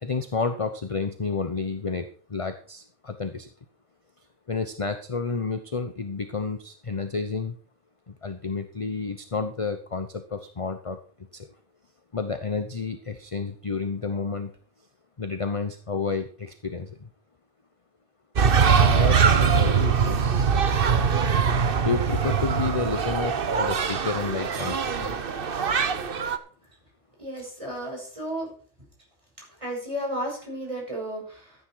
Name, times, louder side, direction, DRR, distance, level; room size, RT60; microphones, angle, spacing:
voice 1, 0.0-3.5 4.5-7.6 8.1-11.0 11.3-11.5 12.1-14.6 15.2-17.1 18.7-20.7 21.8-25.2, left 4 dB, 30° left, 8 dB, 0.8 m, -30 dB
sound 1, 18.4-26.4, right 6 dB, 50° right, 1.1 m, -22 dB
voice 2, 27.2-28.5 29.6-31.5, right 1 dB, 25° right, -2 dB, 6.6 m, -33 dB
14.0 x 9.6 x 4.7 m, 0.41 s
omnidirectional pair, 1.3 m